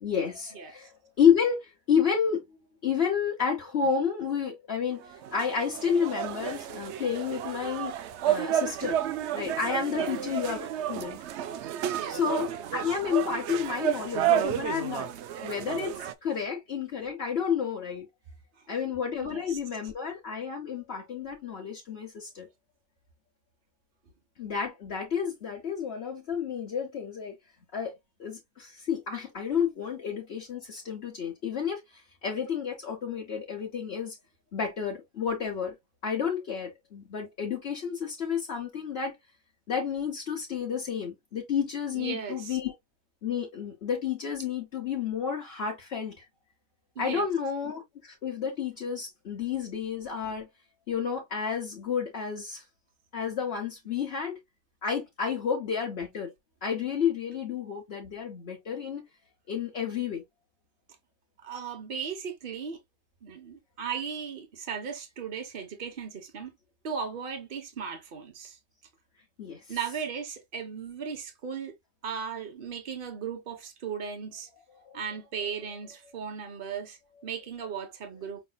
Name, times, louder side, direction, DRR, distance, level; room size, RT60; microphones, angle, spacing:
voice 1, 0.0-7.9 8.2-9.0 9.3-11.2 12.1-15.1 15.4-18.1 18.7-22.5 24.4-27.3 27.7-27.9 28.2-34.2 34.5-35.7 36.0-39.1 39.7-42.7 43.2-46.3 47.0-50.5 50.9-52.6 53.1-54.4 54.8-56.3 56.6-59.0 59.5-60.2 69.4-70.0 74.7-75.2, left 7 dB, 60° left, 1.1 m, -30 dB
voice 2, 0.5-0.9 9.9-10.1 11.9-12.2 19.2-19.6 41.9-42.6 46.9-47.2 61.4-62.8 63.2-66.5 66.8-68.6 69.7-71.7 72.0-74.5 74.9-78.4, right 6 dB, 50° right, 1.2 m, -37 dB
sound 1, 5.0-16.1, right 11 dB, 70° right, 0.8 m, -31 dB
5.3 x 3.3 x 2.2 m
omnidirectional pair, 1.2 m